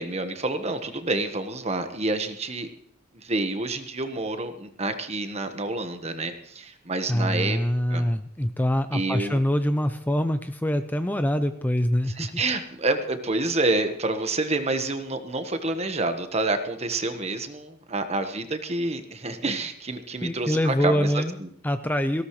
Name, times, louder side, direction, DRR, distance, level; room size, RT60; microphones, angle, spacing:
voice 1, 0.0-2.7 3.2-7.6 7.9-8.0 8.9-9.4 12.2-21.5, right 2 dB, 30° right, 8 dB, 1.4 m, -28 dB
voice 2, 7.1-12.4 20.2-21.3 21.6-22.2, equal, 10° left, 9 dB, 0.5 m, -24 dB
18.5 x 17.0 x 3.2 m, 0.66 s
head